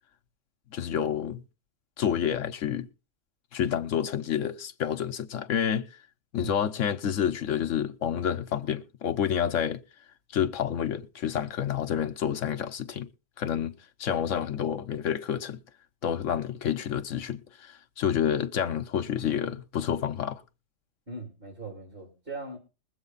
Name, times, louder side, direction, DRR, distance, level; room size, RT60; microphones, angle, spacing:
voice 1, 0.7-1.4 2.0-2.9 3.5-5.9 6.3-9.8 10.3-13.1 13.4-13.7 14.0-15.6 16.0-20.4, left 9 dB, 75° left, 1.2 m, -29 dB
voice 2, 21.1-22.6, right 3 dB, 45° right, 3.6 m, -40 dB
21.0 x 7.9 x 4.0 m
omnidirectional pair, 1.3 m